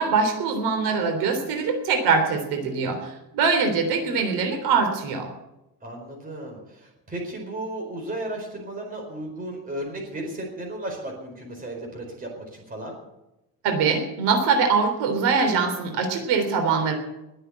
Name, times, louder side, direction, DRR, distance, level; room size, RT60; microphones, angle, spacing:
voice 1, 0.0-5.3 13.6-16.9, right 5 dB, 85° right, 5 dB, 3.6 m, -23 dB
voice 2, 5.8-13.0, right 1 dB, 20° right, 1 dB, 4.7 m, -34 dB
21.0 x 7.9 x 8.3 m, 0.92 s
cardioid pair, 160°, 38 cm